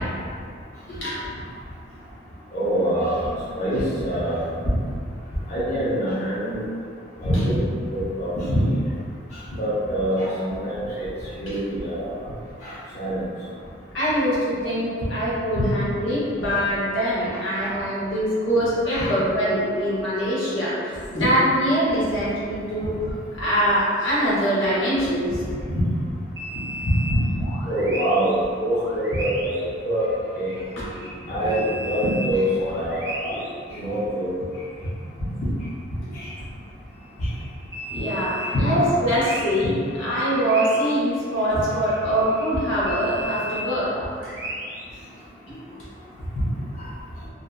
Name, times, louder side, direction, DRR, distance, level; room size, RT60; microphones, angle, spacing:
voice 1, 2.5-4.4 5.5-6.6 7.2-7.6 7.9-8.8 9.6-11.1 11.4-12.1 12.6-13.3 15.6-15.7 17.3-17.8 18.9-19.1 25.7-25.8 26.8-27.2 27.6-30.1 30.3-30.5 31.3-33.4 33.7-34.3 36.1-36.3 37.2-37.3 38.4-38.8 40.0-40.1 46.4-46.5, equal, 35° left, -11 dB, 0.5 m, -25 dB
voice 2, 13.9-22.9 23.3-25.3 30.8-30.9 31.4-31.6 33.3-33.4 36.0-36.1 37.9-39.7 40.0-43.9 44.2-44.3 45.5-45.6, equal, 75° left, -8 dB, 0.8 m, -23 dB
sound 1, 26.4-28.4 28.6-31.2 31.5-33.5 33.7-33.8 36.9-44.9, equal, 15° right, 0.5 m, -36 dB
2.5 x 2.2 x 2.3 m, 2.2 s
head